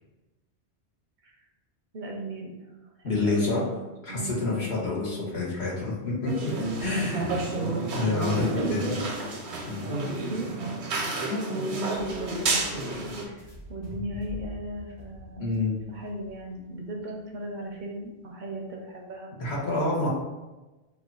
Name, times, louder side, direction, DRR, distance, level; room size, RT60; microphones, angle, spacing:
voice 1, 1.9-2.5 3.0-4.7 6.8-7.5 8.4-9.1 9.7-10.5 11.3-15.6 15.9-19.3, right 1 dB, 55° right, 0 dB, 0.6 m, -37 dB
voice 2, 3.0-3.6 4.0-6.5 6.8-7.3 7.9-8.8 9.7-9.9 15.4-15.8 19.4-20.1, left 3 dB, 75° left, -5 dB, 1.3 m, -28 dB
sound 1, 6.3-13.2, right 2 dB, 85° right, 1.0 m, -30 dB
sound 2, 11.9-18.0, left 1 dB, 50° left, 0.9 m, -45 dB
2.9 x 2.2 x 3.6 m, 1.1 s
omnidirectional pair, 1.1 m